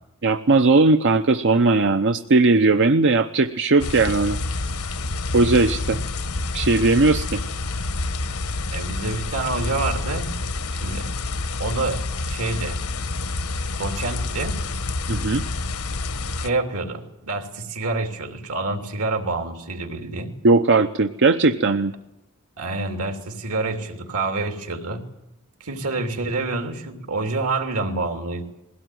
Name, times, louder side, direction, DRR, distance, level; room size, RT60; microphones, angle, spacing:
voice 1, 0.2-4.4 5.3-6.0 6.5-7.4 15.1-15.4 20.4-21.9, right 3 dB, 55° right, 8 dB, 0.8 m, -18 dB
sound 1, 3.8-16.5, left 3 dB, 70° left, 1.1 m, -28 dB
voice 2, 8.7-10.3 10.7-11.0 11.6-12.0 12.3-12.8 13.8-14.6 16.4-20.3 22.6-25.0 25.6-28.4, right 3 dB, 75° right, 5 dB, 3.2 m, -27 dB
21.5 x 17.5 x 9.3 m, 0.91 s
head